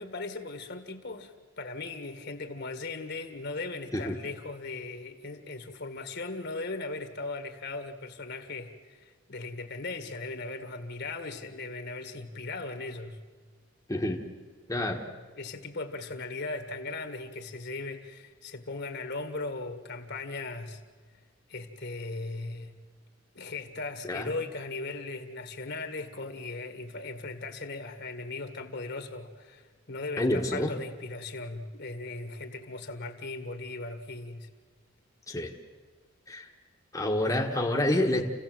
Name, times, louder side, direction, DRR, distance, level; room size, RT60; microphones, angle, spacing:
voice 1, 0.0-13.2 15.3-20.8 21.5-22.7 23.3-34.5, left 3 dB, 55° left, 6 dB, 1.8 m, -38 dB
voice 2, 13.9-14.2 14.7-15.0 24.0-24.3 30.2-30.7 35.3-35.5 36.3-36.5 36.9-38.2, left 1 dB, 15° left, 0 dB, 1.3 m, -28 dB
28.0 x 16.5 x 7.8 m, 1.4 s
head